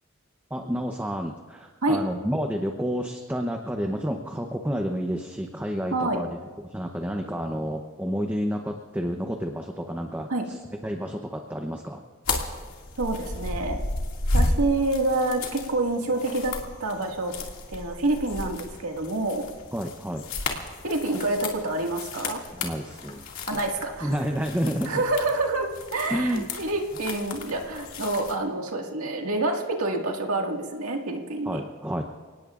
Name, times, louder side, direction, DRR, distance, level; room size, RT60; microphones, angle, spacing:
voice 1, 0.5-6.3 6.7-12.0 19.7-20.2 22.5-23.2 24.0-25.0 26.1-26.5 31.5-32.0, equal, 10° right, 3 dB, 0.8 m, -30 dB
sound 1, 12.2-28.3, left 2 dB, 75° left, 2.3 m, -33 dB
voice 2, 13.0-13.8 14.3-17.3 17.7-19.5 20.8-22.4 23.5-24.1 24.9-31.6, right 2 dB, 90° right, 2 dB, 2.0 m, -27 dB
30.0 x 18.5 x 2.5 m, 1.5 s
head